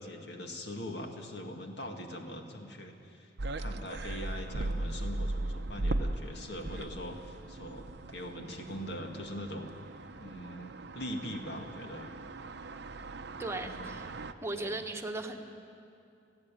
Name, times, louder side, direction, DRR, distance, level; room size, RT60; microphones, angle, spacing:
voice 1, 0.0-3.3 3.6-9.7 10.2-12.1 13.6-13.9 14.5-14.8, equal, 60° left, 3 dB, 2.1 m, -42 dB
sound 1, 3.4-14.3, right 2 dB, 60° right, 0.7 m, -38 dB
voice 2, 13.4-14.1 14.4-15.5, right 2 dB, 15° right, 4 dB, 1.2 m, -37 dB
30.0 x 10.5 x 9.0 m, 2.5 s
head